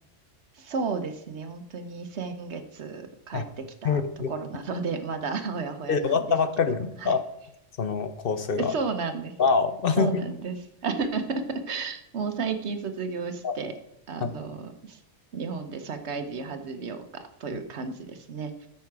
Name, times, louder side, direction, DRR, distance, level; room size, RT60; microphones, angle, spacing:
voice 1, 0.6-4.0 4.3-6.2 7.0-7.2 8.6-9.3 10.0-10.6 10.8-13.7 14.1-15.0 15.3-18.7, right 4 dB, 65° right, 8 dB, 1.2 m, -33 dB
voice 2, 3.8-4.3 5.9-7.2 7.8-8.8 9.4-10.1 13.4-13.5 14.2-14.3, left 5 dB, 55° left, 10 dB, 0.9 m, -25 dB
13.5 x 5.8 x 4.7 m, 0.80 s
omnidirectional pair, 1.2 m